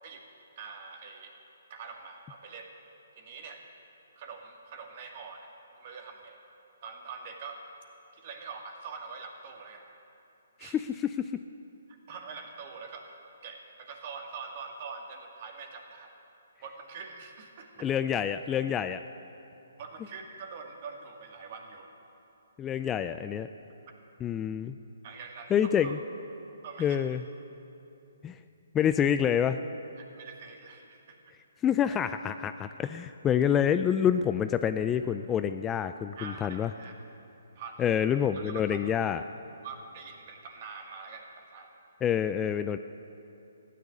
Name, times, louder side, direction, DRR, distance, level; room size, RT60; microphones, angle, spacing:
voice 1, 0.6-1.3 1.7-2.7 3.2-3.6 4.2-5.5 5.8-6.4 6.8-7.6 8.1-9.9 10.6-10.7 11.9-13.2 13.4-16.1 16.6-17.9 19.8-21.9 25.0-25.9 26.6-27.0 30.0-31.2 36.2-36.9 37.6-37.9 38.3-38.8 39.6-41.7, right 5 dB, 45° right, 2 dB, 2.4 m, -44 dB
voice 2, 10.6-11.3 17.8-19.0 22.6-23.5 24.2-24.8 25.5-26.0 26.8-27.2 28.2-28.4 28.7-29.6 31.6-36.7 37.8-39.2 42.0-42.8, left 9 dB, 15° left, 10 dB, 0.4 m, -27 dB
15.5 x 10.0 x 9.4 m, 2.8 s
hypercardioid pair, 140°, 0 cm